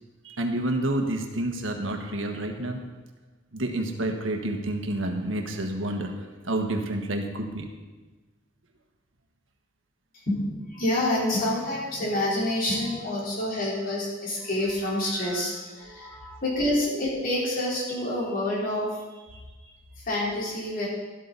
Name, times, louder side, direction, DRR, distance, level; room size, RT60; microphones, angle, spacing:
voice 1, 0.2-2.8 3.5-7.7, right 1 dB, 85° right, 4 dB, 1.5 m, -29 dB
voice 2, 10.1-20.9, left 1 dB, 50° left, -5 dB, 4.1 m, -28 dB
12.5 x 12.5 x 4.1 m, 1.3 s
head